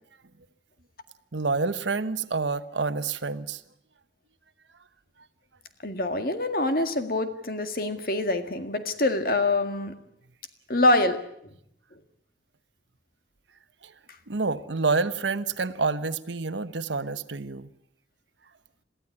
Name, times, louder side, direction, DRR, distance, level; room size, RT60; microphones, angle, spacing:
voice 1, 1.3-3.6 13.8-13.9 14.3-17.7, right 4 dB, 85° right, 13 dB, 1.1 m, -28 dB
voice 2, 5.8-9.9 10.7-11.2, left 2 dB, 50° left, 7 dB, 1.9 m, -25 dB
22.5 x 15.0 x 9.8 m, 0.75 s
head